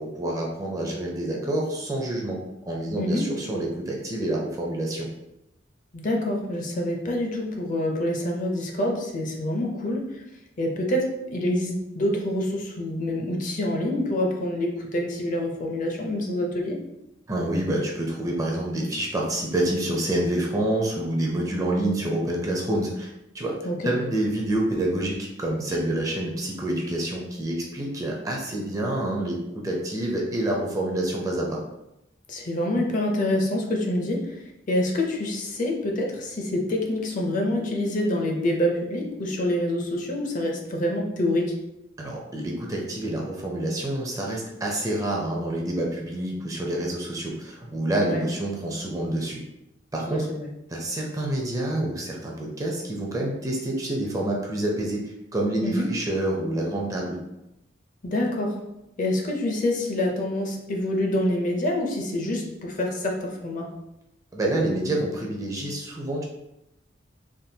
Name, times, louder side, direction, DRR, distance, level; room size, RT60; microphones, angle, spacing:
voice 1, 0.0-5.1 17.3-23.5 23.8-31.6 42.0-49.4 49.9-50.3 50.7-57.2 64.3-66.3, right 1 dB, 20° right, -2 dB, 0.5 m, -27 dB
voice 2, 5.9-10.2 10.6-16.8 23.6-23.9 32.3-34.4 34.7-41.5 48.0-48.3 50.1-50.5 55.6-55.9 58.0-58.6 59.0-63.7, left 1 dB, 45° left, 0 dB, 0.5 m, -26 dB
3.5 x 2.2 x 2.7 m, 0.89 s
head